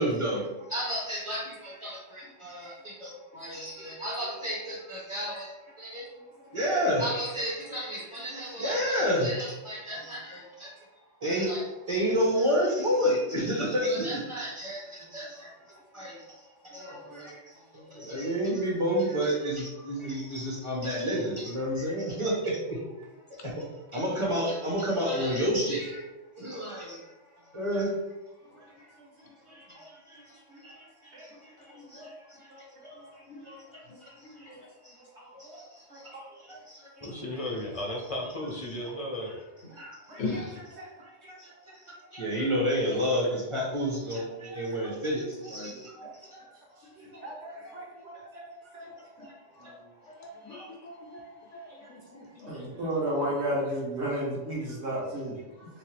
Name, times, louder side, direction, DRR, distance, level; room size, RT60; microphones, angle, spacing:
voice 1, 0.0-5.5 5.8-6.0 6.5-10.7 11.2-15.5 15.9-16.2 16.7-17.3 17.7-22.8 23.4-23.6 23.9-26.0 26.4-27.0 27.5-27.9 29.5-30.2 30.6-33.1 33.4-34.5 34.8-34.9 35.4-37.1 39.8-40.0 41.0-41.8 42.1-46.4 47.6-47.8 48.1-48.4 50.5-50.7 52.5-52.6, equal, 30° right, -4 dB, 0.9 m, -31 dB
voice 2, 16.9-17.4 20.0-20.2 28.6-28.7 29.0-29.9 30.5-30.9 31.1-31.3 31.7-32.2 32.5-32.9 35.1-35.6 35.9-36.3 36.9-37.1 37.9-38.0 40.1-40.4 40.8-40.9 41.2-41.3 45.6-45.8 46.8-48.4 48.7-48.8 49.2-49.9 51.7-52.2 52.5-55.4, right 1 dB, 65° right, -5 dB, 1.5 m, -36 dB
voice 3, 31.7-32.1 33.3-33.5 34.2-34.6 35.3-35.4 36.5-36.6 40.2-40.6 46.0-46.1 47.1-47.2 48.8-48.9 49.5-49.6 50.1-51.8 52.4-52.5 55.6-55.7, left 3 dB, 90° left, 0 dB, 1.0 m, -40 dB
voice 4, 37.0-39.4 51.9-52.8, left 1 dB, 40° left, -1 dB, 0.5 m, -36 dB
3.2 x 3.1 x 3.2 m, 1.1 s
omnidirectional pair, 1.2 m